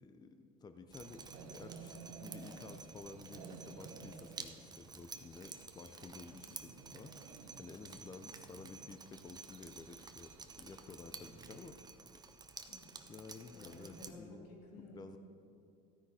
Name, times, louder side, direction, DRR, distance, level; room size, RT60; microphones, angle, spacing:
voice 1, 0.0-11.8 13.1-14.5 14.8-15.2, left 4 dB, 20° left, 8 dB, 0.6 m, -52 dB
Drip, 0.9-14.1, right 4 dB, 20° right, 0.8 m, -52 dB
sound 1, 1.0-11.6, right 5 dB, 70° right, 1.2 m, -55 dB
voice 2, 12.7-13.1 13.5-15.2, left 2 dB, 90° left, -2 dB, 2.7 m, -55 dB
14.5 x 9.8 x 4.2 m, 2.5 s
supercardioid pair, 100°, 20 cm